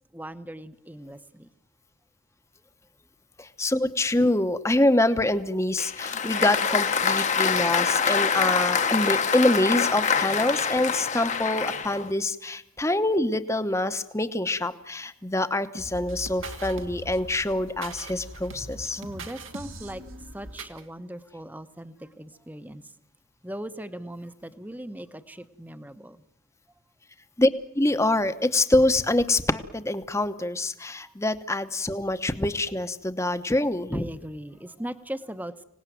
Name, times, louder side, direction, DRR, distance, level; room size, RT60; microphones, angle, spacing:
voice 1, 0.1-1.5 19.0-20.0 20.3-22.8 23.4-26.2 31.0-31.1 33.9-35.6, right 1 dB, 10° right, 11 dB, 1.0 m, -39 dB
voice 2, 3.4-19.0 27.4-27.5 27.7-34.1, left 1 dB, 15° left, 11 dB, 1.0 m, -25 dB
Applause, 5.8-12.1, left 6 dB, 35° left, 1.1 m, -25 dB
sound 1, 15.7-20.8, right 1 dB, 85° right, 2.4 m, -40 dB
25.5 x 18.5 x 9.3 m, 0.79 s
head